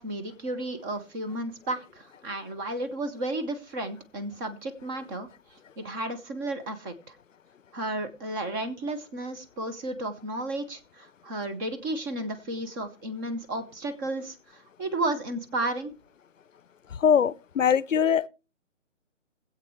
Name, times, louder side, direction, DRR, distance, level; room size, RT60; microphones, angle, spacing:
voice 1, 0.0-5.3 5.8-7.2 7.7-15.9, right 2 dB, 15° right, 0.9 m, -33 dB
voice 2, 17.0-18.3, left 7 dB, 80° left, 0.7 m, -22 dB
21.5 x 8.1 x 3.1 m
figure-of-eight pair, 145°, 38 cm